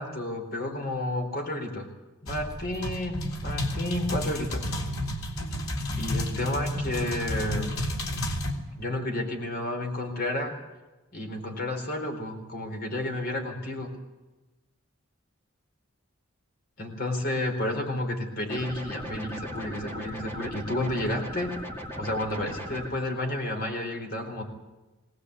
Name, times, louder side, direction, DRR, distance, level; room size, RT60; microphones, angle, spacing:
voice 1, 0.0-1.9 2.2-4.6 6.0-7.7 8.8-10.5 11.1-13.9 16.8-21.5 22.0-24.5, left 1 dB, 50° left, 3 dB, 4.2 m, -31 dB
sound 1, 2.3-8.5, left 1 dB, 90° left, 3.7 m, -31 dB
sound 2, 18.5-22.9, equal, 10° left, 2.4 m, -38 dB
21.5 x 18.5 x 8.3 m, 1.1 s
head